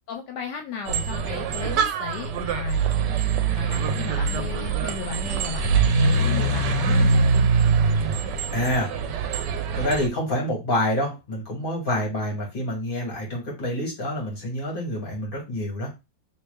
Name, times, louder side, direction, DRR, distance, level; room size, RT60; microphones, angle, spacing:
voice 1, 0.1-2.8 3.5-7.5, left 7 dB, 80° left, 3 dB, 1.2 m, -34 dB
sound 1, 0.9-10.1, right 4 dB, 80° right, 1.2 m, -23 dB
voice 2, 8.5-8.9 9.8-15.9, left 1 dB, 30° left, -1 dB, 1.8 m, -27 dB
3.2 x 3.0 x 3.4 m, 0.25 s
omnidirectional pair, 1.8 m